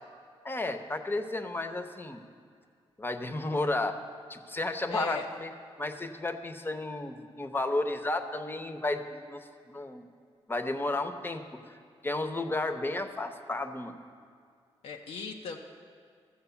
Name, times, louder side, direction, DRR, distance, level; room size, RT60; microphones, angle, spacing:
voice 1, 0.4-2.2 3.0-4.0 4.3-5.5 5.8-10.1 10.5-11.4 11.7-14.0, left 2 dB, 20° left, 8 dB, 0.9 m, -33 dB
voice 2, 4.9-5.3 14.8-15.6, left 5 dB, 80° left, 1 dB, 0.7 m, -38 dB
13.0 x 7.6 x 7.0 m, 2.2 s
cardioid pair, 90°, 10 cm